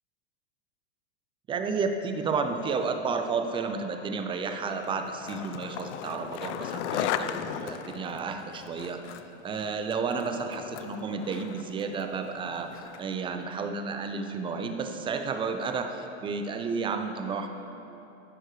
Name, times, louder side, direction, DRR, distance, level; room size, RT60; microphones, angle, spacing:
voice 1, 1.5-9.0 9.4-17.5, right 5 dB, 15° right, 7 dB, 0.4 m, -32 dB
Skateboard, 4.8-13.2, left 10 dB, 80° left, 0.5 m, -37 dB
14.5 x 6.3 x 3.2 m, 2.9 s
supercardioid pair, 125°, 35 cm